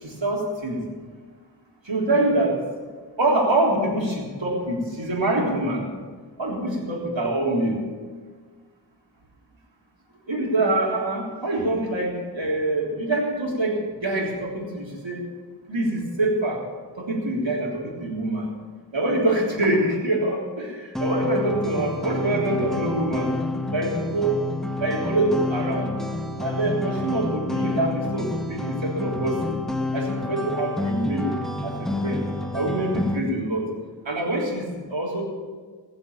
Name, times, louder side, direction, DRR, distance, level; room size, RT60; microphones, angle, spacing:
voice 1, 0.0-0.8 1.9-2.6 3.2-5.9 6.4-7.8 10.3-15.2 15.7-16.6 17.0-18.5 18.9-23.3 23.7-24.4 24.8-25.9 26.4-29.6 29.9-31.3 31.6-32.3 32.5-33.7 34.1-35.2, right 1 dB, 85° right, -3 dB, 3.6 m, -25 dB
sound 1, 21.0-33.2, left 2 dB, ahead, 1.6 m, -29 dB
19.5 x 7.8 x 7.3 m, 1.5 s
wide cardioid pair, 45°, 44 cm